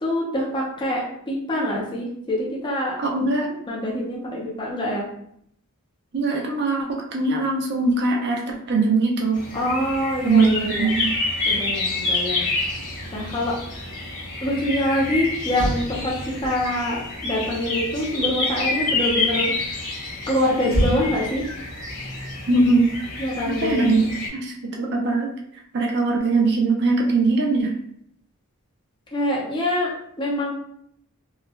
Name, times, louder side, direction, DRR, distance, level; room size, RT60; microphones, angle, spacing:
voice 1, 0.0-3.0 3.7-5.0 9.5-10.9 11.5-12.5 13.1-13.6 14.4-16.1 16.4-19.5 20.3-21.4 23.2-23.9 29.1-29.9 30.2-30.5, left 1 dB, 20° left, -4 dB, 0.6 m, -25 dB
voice 2, 3.0-3.6 6.1-9.4 10.2-11.1 22.5-22.9 23.5-24.1 24.3-25.3 25.7-27.7, right 3 dB, 50° right, 0 dB, 0.5 m, -21 dB
sound 1, 9.3-24.3, left 3 dB, 90° left, 1.2 m, -28 dB
Motor vehicle (road), 15.5-19.0 20.7-23.3 23.5-23.8, equal, 65° left, 1.0 m, -31 dB
3.0 x 2.2 x 2.3 m, 0.71 s
head